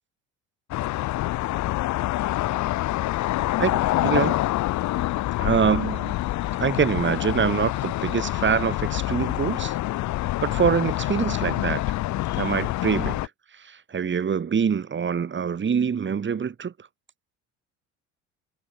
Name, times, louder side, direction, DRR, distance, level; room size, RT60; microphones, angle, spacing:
sound 1, 0.7-13.3, left 16 dB, 55° left, 1.2 m, -26 dB
voice 1, 3.6-4.4 5.4-6.2 6.6-9.7 10.4-11.9 12.4-13.2 13.6-16.7, right 7 dB, 35° right, 3.2 m, -25 dB
hypercardioid pair, 65°, 35 cm